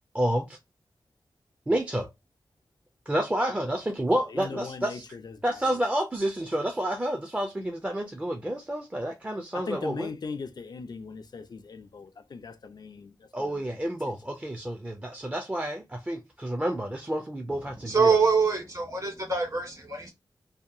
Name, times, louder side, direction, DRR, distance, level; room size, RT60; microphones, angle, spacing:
voice 1, 0.1-0.6 1.7-2.1 3.1-5.1 5.4-10.1 13.3-18.2, right 1 dB, 15° right, 0.4 m, -29 dB
voice 2, 4.4-5.0 5.2-5.3 9.5-13.1 13.4-13.6, left 5 dB, 60° left, 0.4 m, -39 dB
voice 3, 17.9-20.1, right 5 dB, 50° right, 1.4 m, -24 dB
2.8 x 2.2 x 2.5 m
wide cardioid pair, 90°, 8 cm